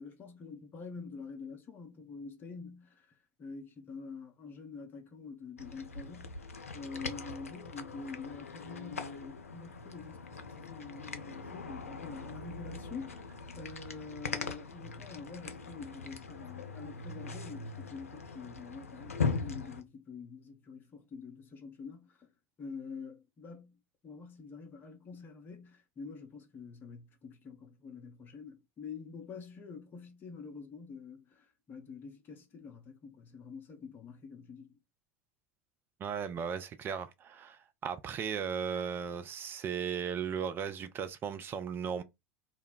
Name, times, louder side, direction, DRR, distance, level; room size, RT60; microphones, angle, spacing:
voice 1, 0.0-22.3 22.6-23.8 24.0-34.8, left 5 dB, 25° left, 0.6 m, -46 dB
sound 1, 5.6-19.8, left 4 dB, 80° left, 0.4 m, -41 dB
voice 2, 36.0-42.0, right 7 dB, 30° right, 0.4 m, -36 dB
2.2 x 2.1 x 3.7 m
figure-of-eight pair, 80°, 8 cm